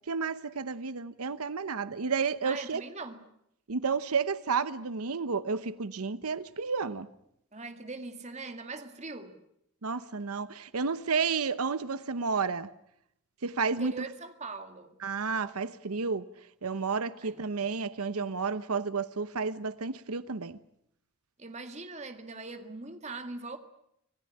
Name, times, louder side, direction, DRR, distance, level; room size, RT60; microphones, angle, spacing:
voice 1, 0.1-2.8 3.7-7.1 9.8-12.7 13.4-13.9 15.0-16.2 16.6-20.6, right 5 dB, 90° right, 0.9 m, -31 dB
voice 2, 2.4-3.2 7.5-9.4 13.7-15.0 17.2-17.4 21.4-23.6, right 3 dB, 30° right, 2.1 m, -41 dB
26.0 x 17.5 x 10.0 m
head